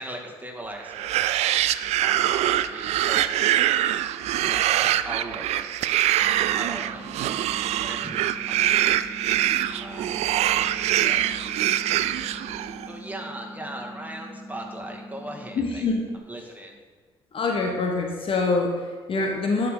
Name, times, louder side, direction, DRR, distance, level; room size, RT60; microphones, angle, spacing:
voice 1, 0.0-3.8 4.4-7.4 7.7-8.3 8.7-9.1 9.6-12.3 12.6-15.9 16.3-16.8, right 1 dB, 10° right, 1 dB, 2.1 m, -40 dB
sound 1, 0.9-12.9, right 12 dB, 60° right, 0.4 m, -24 dB
sound 2, 6.2-16.2, equal, 35° right, 2.0 m, -42 dB
voice 2, 15.6-16.1 17.3-19.7, left 3 dB, 45° left, 2 dB, 1.2 m, -25 dB
11.0 x 5.8 x 3.9 m, 1.5 s
figure-of-eight pair, 45°, 13 cm